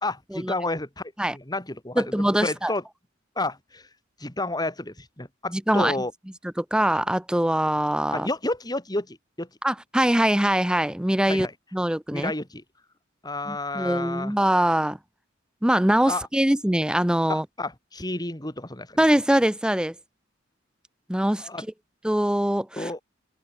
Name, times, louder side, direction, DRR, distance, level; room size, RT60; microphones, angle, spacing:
voice 1, 0.0-2.1 2.4-2.8 3.4-3.9 4.2-6.1 8.1-9.5 11.2-11.5 12.1-12.6 13.2-14.3 16.1-16.3 17.3-19.0 21.4-21.6 22.7-23.0, left 2 dB, 20° left, 4.4 m, -30 dB
voice 2, 2.0-2.7 5.5-5.9 6.6-8.3 9.6-11.5 11.7-12.3 13.5-15.0 15.6-17.5 19.0-19.9 21.1-21.7 22.0-22.9, right 1 dB, 5° right, 0.6 m, -23 dB
open air
head